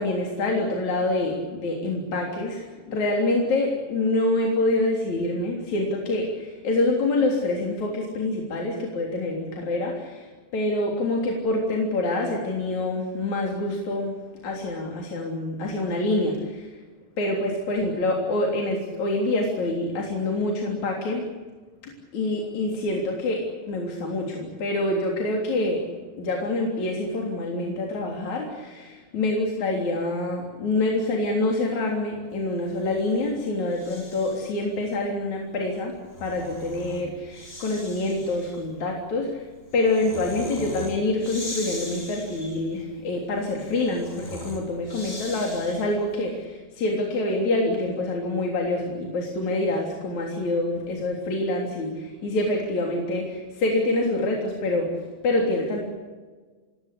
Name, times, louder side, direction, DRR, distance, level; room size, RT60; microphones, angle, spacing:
voice 1, 0.0-16.8 17.2-21.2 21.8-25.8 26.1-35.9 36.2-39.5 39.7-55.0 55.2-55.8, left 2 dB, 65° left, 0 dB, 4.8 m, -26 dB
Breathing, 32.6-34.6 35.8-46.1, left 1 dB, 15° left, 4.7 m, -41 dB
26.5 x 21.0 x 8.4 m, 1.4 s
omnidirectional pair, 3.6 m